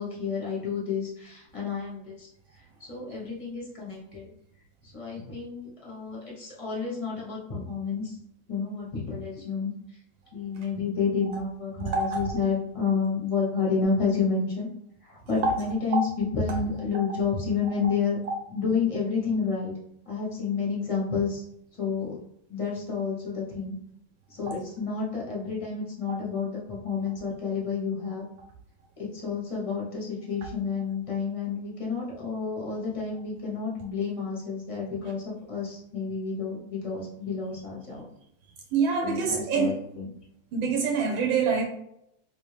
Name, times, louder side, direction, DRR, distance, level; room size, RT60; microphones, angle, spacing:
voice 1, 0.0-2.3 2.8-4.3 4.8-8.2 8.5-9.7 10.3-14.7 15.0-18.2 18.5-19.7 20.0-21.4 21.7-22.2 22.5-23.7 24.3-28.2 29.0-38.0 39.0-40.1, left 5 dB, 30° left, 0.6 m, -30 dB
voice 2, 11.8-12.2 15.3-15.5 16.5-16.6 17.6-17.7 38.7-39.8 40.5-41.6, right 5 dB, 80° right, 1.4 m, -26 dB
3.5 x 2.8 x 3.2 m
omnidirectional pair, 2.1 m